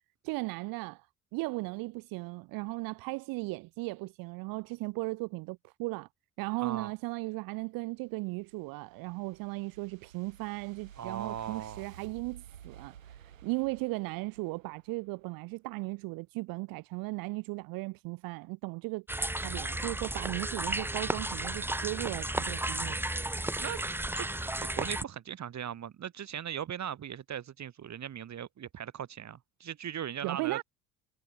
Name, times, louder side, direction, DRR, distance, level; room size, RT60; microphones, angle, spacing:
voice 1, 0.2-1.1 1.3-6.1 6.4-19.0 19.3-23.0 23.4-23.6 30.2-30.6, right 24 dB, 60° right, 1.1 m, -37 dB
voice 2, 6.6-6.9 11.0-11.8 23.6-23.8 24.1-24.3 24.6-30.6, right 9 dB, 45° right, 3.1 m, -39 dB
sound 1, 8.0-15.3, right 9 dB, 85° right, 6.4 m, -53 dB
sound 2, 19.1-25.0, right 1 dB, 5° right, 1.1 m, -33 dB
figure-of-eight pair, 50°, 39 cm